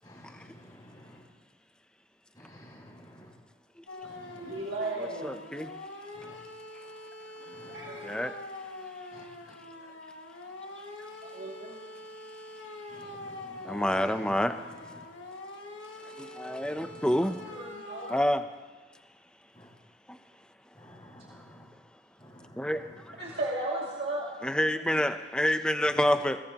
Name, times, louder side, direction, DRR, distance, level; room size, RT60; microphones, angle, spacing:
voice 1, 0.0-1.2 2.3-3.3 4.0-4.7 6.1-6.4 7.5-8.0 9.1-9.6 12.9-15.1 16.6-17.5 19.5-19.7 20.7-21.7 22.2-23.4 25.8-26.0, equal, 20° left, -3 dB, 6.3 m, -52 dB
sound 1, 3.9-18.3, left 2 dB, 80° left, 1.5 m, -44 dB
voice 2, 4.3-5.3 7.4-8.1 11.2-11.8 17.4-18.2 23.2-24.3 24.7-25.0, right 2 dB, 55° right, -5 dB, 2.5 m, -35 dB
voice 3, 5.2-5.7 8.0-8.3 13.6-14.5 16.2-17.4 18.1-18.4 20.1-20.2 22.6-22.8 24.4-26.4, equal, 5° left, 7 dB, 0.6 m, -27 dB
21.5 x 21.0 x 3.0 m, 1.3 s
head